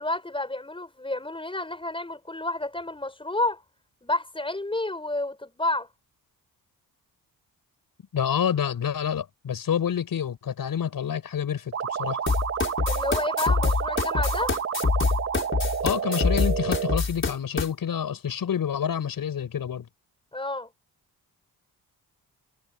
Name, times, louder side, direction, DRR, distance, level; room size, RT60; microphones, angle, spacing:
voice 1, 0.0-3.6 4.0-5.9 12.9-14.5 20.3-20.7, left 2 dB, 15° left, 5.8 m, -30 dB
voice 2, 8.1-12.2 15.8-19.9, left 8 dB, 65° left, 6.7 m, -28 dB
sound 1, 11.7-17.0, right 7 dB, 40° right, 0.9 m, -30 dB
sound 2, 12.3-17.7, left 4 dB, 30° left, 4.4 m, -25 dB
cardioid pair, 100°, 37 cm